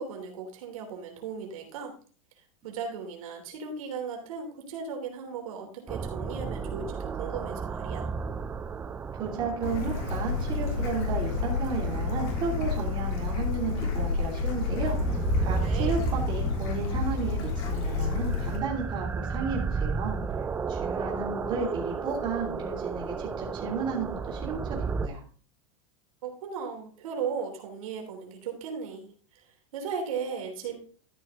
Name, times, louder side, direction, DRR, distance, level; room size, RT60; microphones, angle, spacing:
voice 1, 0.0-1.9 2.6-8.1 15.6-16.0 21.6-21.7 26.2-29.5 29.7-30.7, right 6 dB, 75° right, 2 dB, 3.3 m, -36 dB
sound 1, 5.9-25.1, right 5 dB, 10° right, 0.4 m, -34 dB
voice 2, 9.1-15.0 15.4-20.2 20.7-24.8 25.0-25.2, right 4 dB, 25° right, -2 dB, 2.8 m, -33 dB
Bird / Stream, 9.6-18.6, left 4 dB, 45° left, 3.4 m, -30 dB
13.0 x 6.1 x 3.7 m, 0.42 s
supercardioid pair, 155°, 18 cm